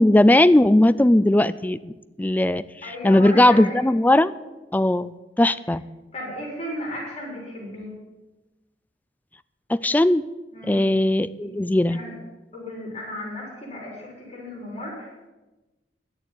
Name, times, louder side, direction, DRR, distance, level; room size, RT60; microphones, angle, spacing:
voice 1, 0.0-1.9 2.2-2.6 3.0-4.3 4.7-5.8 9.7-10.2 10.6-12.0, left 1 dB, 10° left, 15 dB, 0.3 m, -18 dB
voice 2, 2.8-3.9 6.1-7.9 10.5-10.9 11.4-11.5 11.9-12.1 12.5-15.1, left 1 dB, 35° left, -4 dB, 4.1 m, -35 dB
11.0 x 6.8 x 9.0 m, 1.1 s
head